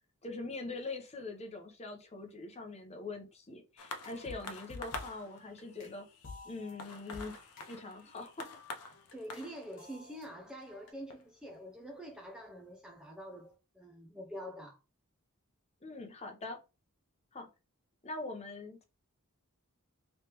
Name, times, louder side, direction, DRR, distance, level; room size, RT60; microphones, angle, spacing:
voice 1, 0.2-6.1 6.4-7.4 7.7-8.5 15.8-16.6 17.3-17.5 18.0-18.8, left 3 dB, 30° left, 0.8 m, -43 dB
sound 1, 3.8-12.6 13.4-13.5, left 3 dB, 80° left, 0.7 m, -48 dB
sound 2, 4.0-9.5 9.8-10.9, left 3 dB, 60° left, 1.4 m, -52 dB
voice 2, 9.1-14.8, equal, 5° right, 0.5 m, -46 dB
3.2 x 3.2 x 2.9 m
head